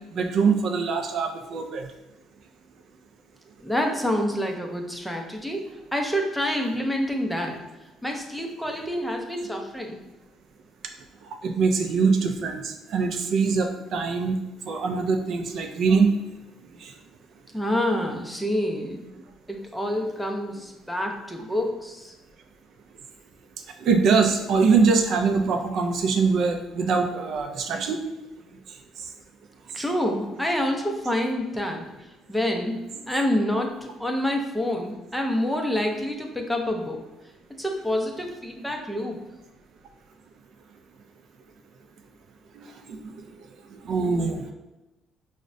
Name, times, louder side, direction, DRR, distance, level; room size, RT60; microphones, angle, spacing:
voice 1, 0.1-1.9 11.4-14.4 14.7-16.2 16.8-16.9 23.8-28.0 42.6-43.1 43.7-44.4, right 5 dB, 60° right, 5 dB, 0.3 m, -23 dB
voice 2, 3.6-7.6 8.0-10.0 17.5-19.1 19.5-22.1 29.7-31.9 32.3-32.8 33.1-37.0 37.6-39.2, left 1 dB, ahead, 2 dB, 0.5 m, -27 dB
5.0 x 2.1 x 2.5 m, 1.0 s
cardioid pair, 115°, 0 cm